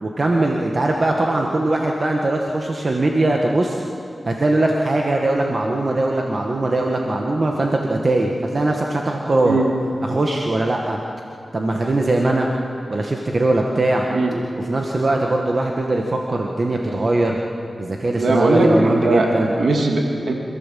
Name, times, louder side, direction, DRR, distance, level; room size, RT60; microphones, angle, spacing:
voice 1, 0.0-3.8 4.3-9.6 10.1-11.0 11.5-12.5 12.9-14.1 14.6-17.4 17.8-19.5, right 2 dB, 50° right, 0 dB, 1.8 m, -20 dB
voice 2, 18.2-19.3 19.6-20.3, right 2 dB, 85° right, 0 dB, 2.9 m, -18 dB
26.5 x 15.5 x 7.7 m, 2.5 s
cardioid pair, 60°, 0 cm